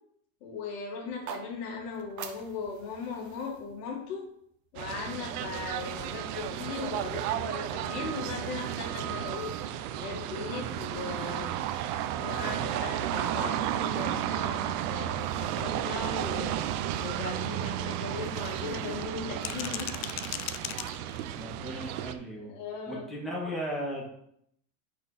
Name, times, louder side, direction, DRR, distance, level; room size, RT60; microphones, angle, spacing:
voice 1, 0.4-4.3 4.7-11.8 12.2-19.9 22.4-23.1, left 4 dB, 85° left, 0 dB, 2.2 m, -38 dB
sound 1, 1.0-5.2, right 7 dB, 40° right, 1.0 m, -46 dB
sound 2, 4.8-22.1, right 11 dB, 80° right, 0.8 m, -33 dB
sound 3, 13.6-13.7 14.2-14.3 14.7-14.8 15.2-15.3 15.7-15.8 16.2-16.3 16.7-16.9 17.3-18.3 19.2-21.4, left 13 dB, 40° left, 0.4 m, -39 dB
voice 2, 21.4-22.5 22.9-24.1, equal, ahead, -4 dB, 2.1 m, -36 dB
8.9 x 4.7 x 4.2 m, 0.72 s
supercardioid pair, 140°, 46 cm